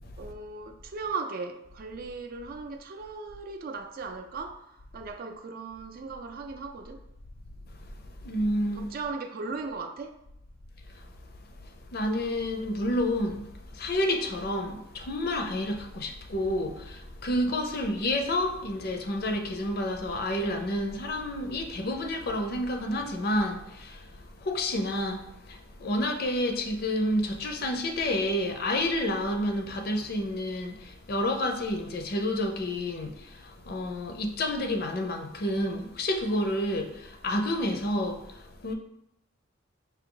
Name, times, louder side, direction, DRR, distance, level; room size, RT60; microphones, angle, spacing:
voice 1, 0.2-7.0 8.7-10.2, right 4 dB, 50° right, 0.4 m, -37 dB
voice 2, 8.2-8.9 10.9-11.1 11.9-38.7, left 1 dB, 50° left, 0.6 m, -29 dB
4.8 x 2.7 x 3.8 m
head